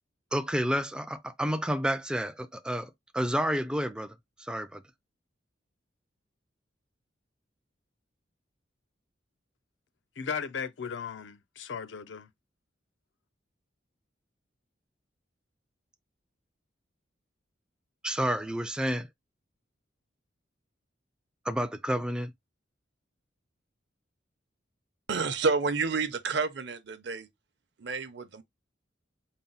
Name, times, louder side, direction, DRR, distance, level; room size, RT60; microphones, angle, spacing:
voice 1, 0.3-4.1 4.4-4.8 18.0-19.1 21.5-22.3, equal, 5° right, 0.3 m, -30 dB
voice 2, 10.2-12.3, left 6 dB, 75° left, 0.5 m, -36 dB
voice 3, 25.1-27.3 27.8-28.4, right 4 dB, 60° right, 0.7 m, -29 dB
4.1 x 2.0 x 3.9 m
head